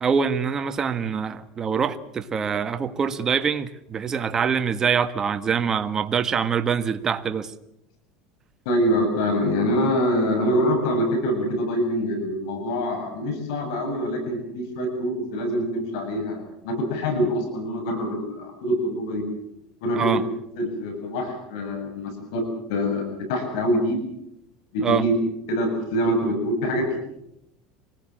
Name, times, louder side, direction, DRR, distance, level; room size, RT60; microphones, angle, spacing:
voice 1, 0.0-7.5 19.9-20.2 24.8-25.1, right 6 dB, 25° right, 9 dB, 1.4 m, -24 dB
voice 2, 8.7-19.2 19.8-20.2 20.6-24.0 24.7-25.1 25.5-27.0, equal, 75° left, 5 dB, 7.5 m, -25 dB
25.5 x 19.5 x 7.5 m, 0.81 s
supercardioid pair, 140°, 2 cm